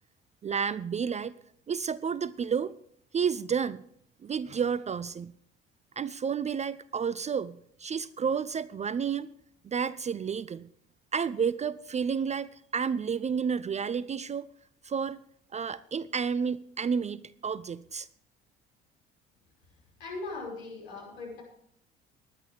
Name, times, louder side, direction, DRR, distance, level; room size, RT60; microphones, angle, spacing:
voice 1, 0.4-1.3 1.7-2.7 3.1-3.8 4.2-5.3 6.0-9.3 9.6-10.7 11.1-14.5 14.8-15.2 15.5-18.1, right 6 dB, 25° right, 19 dB, 0.4 m, -31 dB
voice 2, 20.0-21.4, left 3 dB, 70° left, -3 dB, 5.6 m, -39 dB
20.0 x 10.5 x 3.4 m, 0.65 s
figure-of-eight pair, 50°, 29 cm